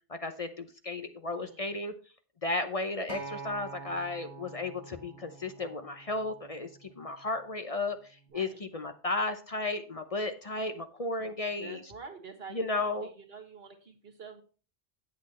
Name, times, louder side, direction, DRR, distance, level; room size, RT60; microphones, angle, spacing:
voice 1, 0.1-1.9 2.4-11.8 12.5-13.1, left 2 dB, 40° left, 7 dB, 0.8 m, -34 dB
voice 2, 1.4-1.7 8.3-8.6 11.2-11.3 11.6-14.4, right 5 dB, 75° right, 7 dB, 1.7 m, -47 dB
Acoustic guitar, 3.1-7.4 8.2-8.3, right 3 dB, 55° left, 2.5 m, -46 dB
8.5 x 8.4 x 4.2 m, 0.37 s
omnidirectional pair, 1.0 m